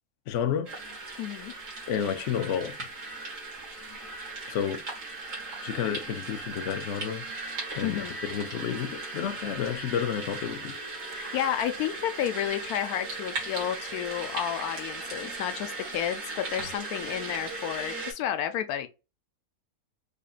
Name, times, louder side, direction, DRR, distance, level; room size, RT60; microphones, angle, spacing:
voice 1, 0.3-0.7 1.9-2.8 4.5-4.8 5.6-7.2 7.8-10.8, left 8 dB, 65° left, 0.8 m, -30 dB
sound 1, 0.7-18.1, right 3 dB, 80° right, 2.2 m, -38 dB
voice 2, 1.2-1.5 7.8-8.2 11.1-18.9, left 10 dB, 85° left, 1.1 m, -31 dB
5.1 x 2.4 x 2.4 m
omnidirectional pair, 1.6 m